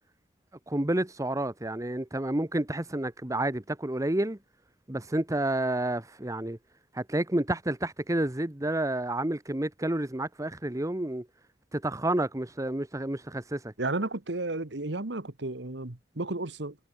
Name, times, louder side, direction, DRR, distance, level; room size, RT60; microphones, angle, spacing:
voice 1, 0.7-4.4 4.9-6.6 6.9-11.3 11.7-13.7, right 1 dB, 20° right, 1.1 m, -30 dB
voice 2, 13.8-16.8, right 2 dB, 70° right, 1.7 m, -33 dB
head